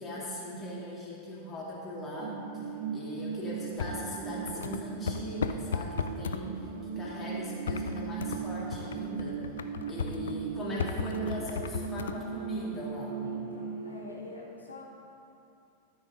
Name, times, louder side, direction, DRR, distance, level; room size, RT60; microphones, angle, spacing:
voice 1, 0.0-6.7 7.0-9.4 9.9-13.3, left 1 dB, 15° left, -6 dB, 2.3 m, -39 dB
sound 1, 2.2-14.1, right 6 dB, 50° right, 0.8 m, -38 dB
sound 2, 3.8-6.4 7.7-8.4 8.7-10.4 10.8-12.2, left 7 dB, 65° left, 0.4 m, -35 dB
voice 2, 13.2-14.8, left 2 dB, 80° left, -5 dB, 1.7 m, -45 dB
13.0 x 6.1 x 3.9 m, 2.7 s
figure-of-eight pair, 90°, 0 cm